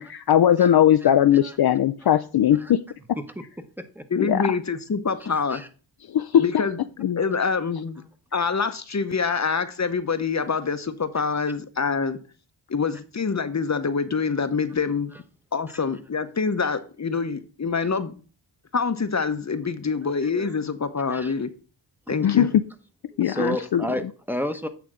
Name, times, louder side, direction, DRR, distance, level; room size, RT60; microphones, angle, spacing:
voice 1, 0.0-2.8 4.2-4.5 6.1-6.4 7.0-7.2 22.2-22.5 23.2-23.8, left 10 dB, 55° left, 9 dB, 0.5 m, -19 dB
voice 2, 1.0-1.6 2.5-2.7 3.2-4.0 5.3-5.7 10.4-10.5 17.8-17.9 20.3-20.5 21.1-21.3 22.1-22.5 23.1-24.7, equal, 5° right, 6 dB, 1.0 m, -33 dB
voice 3, 4.1-5.6 6.4-6.8 7.2-8.0 8.3-12.2 12.7-15.1 15.5-18.1 18.7-21.5 22.1-22.5, left 5 dB, 35° left, 10 dB, 0.9 m, -26 dB
8.7 x 3.4 x 6.0 m, 0.37 s
cardioid pair, 55°, 46 cm